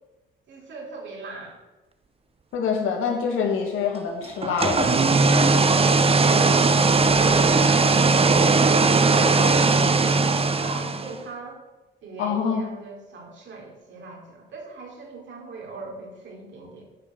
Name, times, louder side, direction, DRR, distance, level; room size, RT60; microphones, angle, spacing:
voice 1, 0.5-1.6 10.6-11.6 12.0-16.8, right 3 dB, 70° right, -1 dB, 3.8 m, -40 dB
voice 2, 2.5-5.2 12.2-12.6, left 6 dB, 90° left, 2 dB, 2.3 m, -25 dB
sound 1, 4.4-11.2, right 3 dB, 30° right, 0.9 m, -19 dB
10.0 x 5.6 x 7.4 m, 1.1 s
cardioid pair, 90°, 20 cm